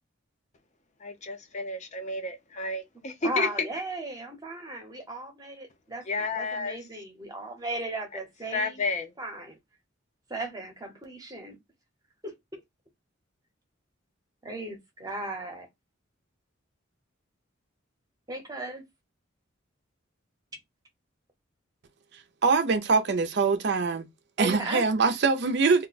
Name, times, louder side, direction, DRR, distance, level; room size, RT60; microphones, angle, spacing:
voice 1, 1.0-3.8 6.1-6.8 8.5-9.1, left 3 dB, 35° left, 0.5 m, -31 dB
voice 2, 3.2-6.1 6.3-8.8 9.2-9.6 10.3-11.6 12.2-12.3 14.4-15.7 18.3-18.8 24.4-24.8, right 2 dB, 20° right, 0.7 m, -36 dB
voice 3, 22.4-24.1 24.4-25.9, right 4 dB, 55° right, 0.5 m, -23 dB
2.4 x 2.1 x 3.9 m
head